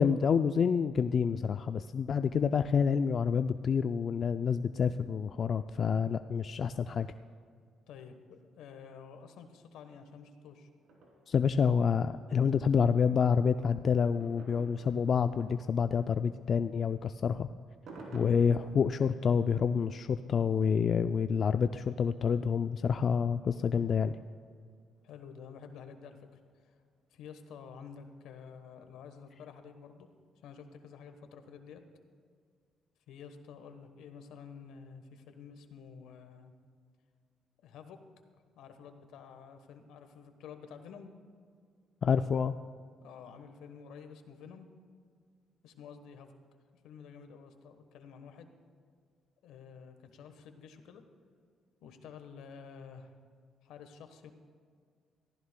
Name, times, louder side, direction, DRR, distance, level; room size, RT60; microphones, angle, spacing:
voice 1, 0.0-7.1 11.3-17.5 18.1-24.2 42.0-42.6, left 6 dB, 50° left, 10 dB, 0.3 m, -28 dB
voice 2, 7.9-10.7 25.0-26.3 26.6-26.7 27.1-30.1 30.4-31.8 33.1-36.5 37.6-38.0 38.6-41.1 43.0-44.7 45.6-46.4 46.8-48.5 49.4-51.0 51.8-53.1 53.6-54.3, left 6 dB, 85° left, 8 dB, 1.2 m, -50 dB
sound 1, 10.8-23.5 24.0-24.1 24.3-24.4 24.5-24.6 25.0-25.1 26.0-26.1 26.6-26.7 27.9-28.4 28.6-28.7 29.1-29.2 29.6-29.7, right 2 dB, 75° right, 3.1 m, -55 dB
22.0 x 14.5 x 2.3 m, 2.1 s
cardioid pair, 85°, 0 cm